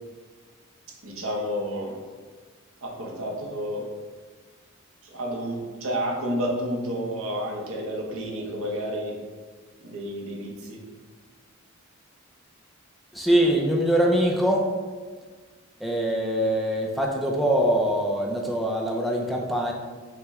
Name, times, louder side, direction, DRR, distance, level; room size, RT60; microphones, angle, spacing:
voice 1, 1.0-2.0 2.8-3.8 5.0-9.1 9.8-10.8, equal, 80° right, -2 dB, 0.9 m, -30 dB
voice 2, 13.1-14.7 15.8-19.7, right 1 dB, ahead, -1 dB, 0.5 m, -23 dB
5.7 x 2.2 x 3.6 m, 1.5 s
head